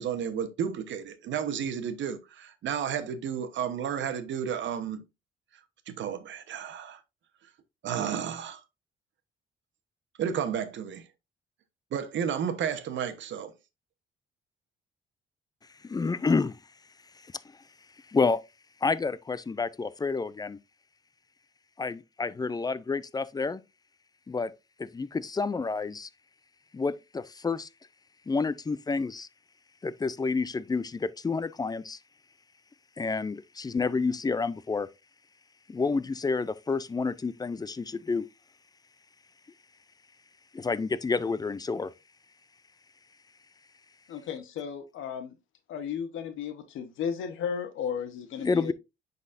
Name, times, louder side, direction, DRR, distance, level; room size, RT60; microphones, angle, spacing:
voice 1, 0.0-5.0 5.9-7.0 7.8-8.6 10.2-11.0 11.9-13.5, right 8 dB, 70° right, 1.0 m, -32 dB
voice 2, 15.8-16.6 17.2-17.4 18.1-18.4 18.8-20.6 21.8-23.6 24.3-24.5 24.8-26.1 26.7-27.7 28.3-29.3 29.8-32.0 33.0-34.9 35.7-38.3 40.5-41.9 48.4-48.7, left 4 dB, 20° left, 0.4 m, -29 dB
voice 3, 44.1-45.3 45.7-48.7, left 7 dB, 80° left, 1.0 m, -34 dB
9.8 x 4.1 x 2.5 m
cardioid pair, 90°, 20 cm